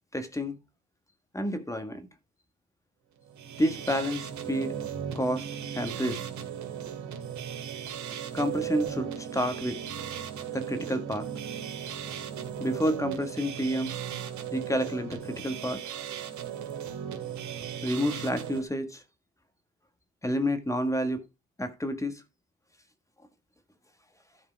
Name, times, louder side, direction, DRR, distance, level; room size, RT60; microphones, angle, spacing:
voice 1, 0.1-0.6 1.3-2.0 3.6-4.7 5.1-5.5 5.7-6.2 8.3-9.8 10.5-11.3 12.6-14.0 14.5-15.8 17.8-19.0 20.2-21.3 21.6-22.2, equal, 10° left, 1.6 m, -29 dB
sound 1, 3.2-18.6, right 9 dB, 70° right, 2.4 m, -37 dB
12.5 x 4.9 x 4.6 m
cardioid pair, 90°, 30 cm